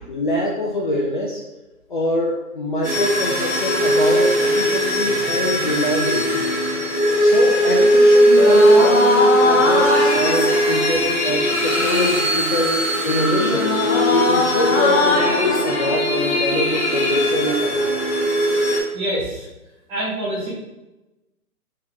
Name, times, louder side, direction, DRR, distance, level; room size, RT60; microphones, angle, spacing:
voice 1, 0.1-1.4 1.9-6.5 7.2-13.7 14.1-17.9, left 1 dB, 35° left, -3 dB, 0.5 m, -24 dB
sound 1, 2.8-18.8, equal, 5° left, 0.9 m, -19 dB
sound 2, 8.2-18.0, left 2 dB, 50° left, 1.0 m, -22 dB
voice 2, 18.9-19.5 19.9-20.5, right 1 dB, 10° right, -8 dB, 1.4 m, -25 dB
4.8 x 2.9 x 3.5 m, 1.0 s
figure-of-eight pair, 140°, 44 cm